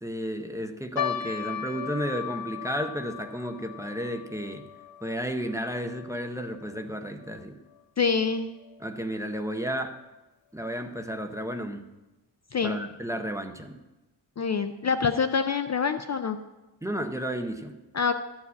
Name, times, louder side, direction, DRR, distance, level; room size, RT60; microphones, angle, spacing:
voice 1, 0.0-4.6 5.0-7.5 8.8-9.9 10.5-11.8 12.6-13.8 16.8-17.8, equal, 5° right, 5 dB, 0.6 m, -32 dB
sound 1, 1.0-7.5 7.7-7.8 8.6-8.9 9.5-9.6 9.9-10.1, left 9 dB, 80° left, 0.9 m, -37 dB
voice 2, 8.0-8.5 12.5-12.8 14.4-16.4 17.9-18.1, left 5 dB, 40° left, 9 dB, 0.4 m, -26 dB
12.5 x 4.8 x 8.2 m, 1.1 s
wide cardioid pair, 175°, 44 cm